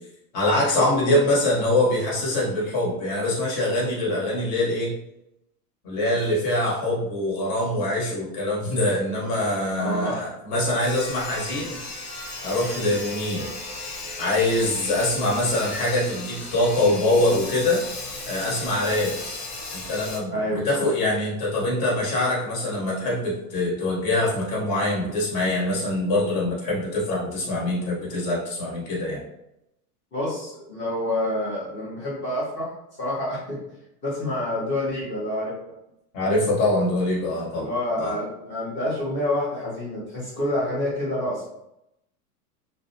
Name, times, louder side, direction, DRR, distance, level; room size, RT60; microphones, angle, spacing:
voice 1, 0.3-4.9 5.8-11.8 12.4-13.5 14.2-17.8 18.3-19.2 19.7-29.2 36.1-37.7 38.0-38.1, left 1 dB, 45° left, -5 dB, 1.2 m, -24 dB
voice 2, 9.8-10.3 20.3-20.9 30.1-32.7 33.0-33.6 34.0-35.5 37.5-41.5, left 1 dB, 25° left, -6 dB, 0.8 m, -28 dB
Sawing, 10.8-20.2, left 2 dB, 85° left, 1.0 m, -35 dB
2.5 x 2.1 x 2.7 m, 0.84 s
supercardioid pair, 135°, 47 cm